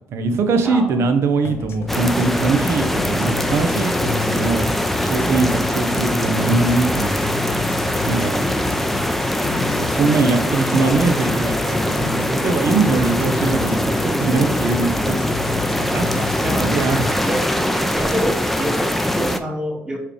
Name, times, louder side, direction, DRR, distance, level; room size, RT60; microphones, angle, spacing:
voice 1, 0.1-4.7 5.0-7.5 8.1-8.5 9.8-15.2 15.8-17.2, right 4 dB, 65° right, 7 dB, 0.7 m, -22 dB
voice 2, 0.6-1.2 4.0-4.4 8.3-8.8 16.4-20.0, right 1 dB, 15° right, 1 dB, 1.3 m, -28 dB
sound 1, 1.4-17.4, left 6 dB, 55° left, 0.5 m, -31 dB
sound 2, 1.9-19.4, left 1 dB, 5° left, 0.4 m, -22 dB
4.7 x 3.4 x 3.1 m, 0.81 s
supercardioid pair, 70°, 5 cm